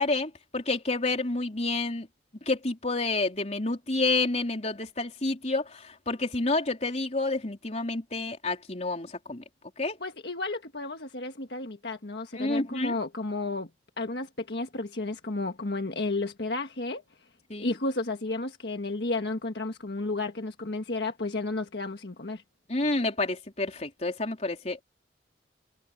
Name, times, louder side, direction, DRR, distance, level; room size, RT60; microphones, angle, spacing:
voice 1, 0.0-2.1 2.5-9.4 9.8-10.0 12.3-13.0 17.5-17.7 22.7-24.8, left 2 dB, 40° left, 3.8 m, -29 dB
voice 2, 10.0-13.7 14.0-17.0 17.6-22.4, left 2 dB, 65° left, 1.6 m, -32 dB
head